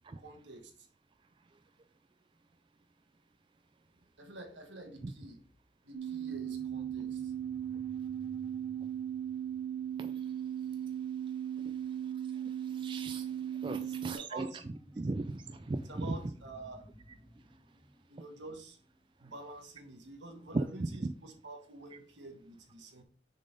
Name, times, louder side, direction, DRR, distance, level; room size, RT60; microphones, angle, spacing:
voice 1, 0.2-0.9 4.2-5.4 5.8-7.3 13.7-14.6 15.9-16.8 18.1-18.8 19.2-23.0, right 2 dB, 75° right, 1.5 m, -48 dB
sound 1, 5.9-14.2, right 9 dB, 55° right, 0.7 m, -37 dB
sound 2, 6.1-11.1 14.5-19.4, equal, 5° right, 0.9 m, -57 dB
voice 2, 11.6-14.5 15.0-16.2 20.5-21.1, right 2 dB, 25° right, 0.3 m, -38 dB
6.4 x 4.2 x 5.2 m
head